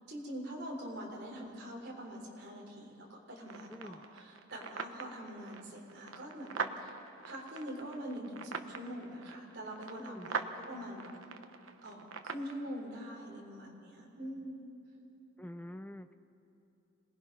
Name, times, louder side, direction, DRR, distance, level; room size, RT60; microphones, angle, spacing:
voice 1, 0.1-6.9 7.3-11.1 11.8-14.7, equal, 50° right, -1 dB, 3.8 m, -44 dB
sound 1, 3.4-12.5, right 5 dB, 75° right, 1.0 m, -43 dB
voice 2, 3.7-4.0 10.0-10.3 15.4-16.1, left 1 dB, 10° left, 10 dB, 0.5 m, -46 dB
26.5 x 19.5 x 5.4 m, 2.9 s
head